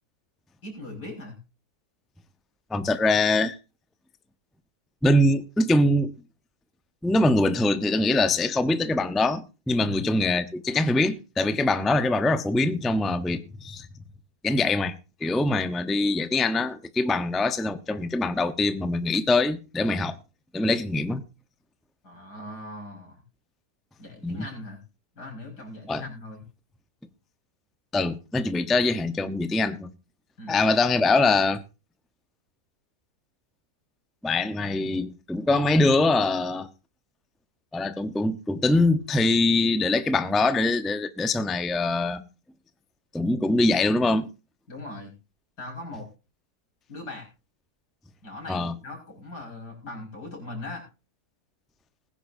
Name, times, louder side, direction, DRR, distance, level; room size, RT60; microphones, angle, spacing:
voice 1, 0.6-1.4 9.8-10.0 22.0-23.2 24.0-24.8 25.2-26.4 30.4-30.6 44.7-45.1 45.6-46.1 46.9-47.3 48.2-50.8, left 2 dB, 85° left, 6.1 m, -39 dB
voice 2, 2.7-3.5 5.0-6.1 7.0-13.9 14.4-14.9 15.2-20.1 20.5-21.2 24.2-24.5 25.9-26.0 27.9-29.9 30.5-31.6 34.2-36.7 37.7-42.2 43.1-44.3 48.5-48.7, left 2 dB, ahead, 0.6 m, -23 dB
20.5 x 10.0 x 2.7 m
omnidirectional pair, 1.7 m